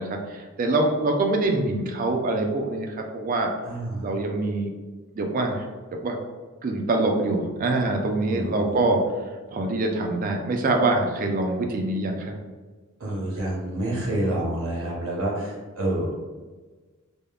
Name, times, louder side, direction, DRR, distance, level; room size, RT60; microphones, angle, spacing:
voice 1, 0.0-3.5 4.0-4.7 5.1-5.7 6.0-6.2 6.6-9.0 9.5-12.3, right 2 dB, 40° right, 3 dB, 0.3 m, -24 dB
voice 2, 3.6-4.1 8.3-8.8 13.0-16.2, right 1 dB, 65° right, -4 dB, 0.7 m, -28 dB
3.4 x 2.0 x 2.3 m, 1.3 s
head